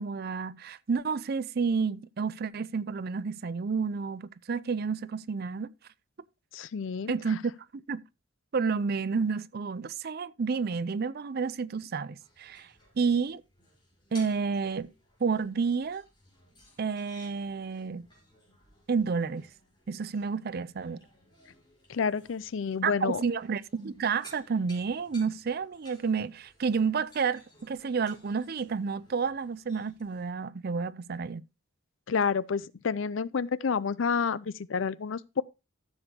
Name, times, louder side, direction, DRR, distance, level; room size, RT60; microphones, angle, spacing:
voice 1, 0.0-5.7 7.1-8.0 8.5-12.7 13.0-13.4 14.1-14.9 15.2-16.0 16.8-18.1 18.9-19.5 19.9-21.0 22.8-31.4, right 5 dB, 50° right, 0.5 m, -30 dB
voice 2, 6.5-7.1 21.9-23.2 32.1-35.4, left 6 dB, 70° left, 0.5 m, -29 dB
sound 1, 12.2-30.3, left 1 dB, 20° left, 4.9 m, -58 dB
13.5 x 7.1 x 2.8 m
head